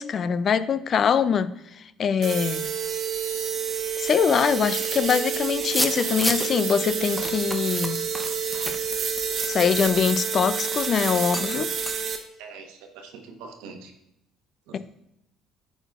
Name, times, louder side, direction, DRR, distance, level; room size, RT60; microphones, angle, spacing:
voice 1, 0.0-2.7 4.0-8.0 9.4-11.7 14.7-14.8, left 7 dB, 50° left, 0.4 m, -23 dB
sound 1, 2.2-12.2, right 7 dB, 50° right, 1.0 m, -28 dB
sound 2, 5.6-6.6 7.2-10.2 10.6-10.8 11.3-11.6 11.9-12.0, left 1 dB, 5° left, 0.7 m, -31 dB
voice 2, 5.6-5.9 12.4-13.9 14.7-14.8, right 5 dB, 80° right, 1.2 m, -43 dB
10.0 x 4.1 x 3.6 m
supercardioid pair, 80°, 0 cm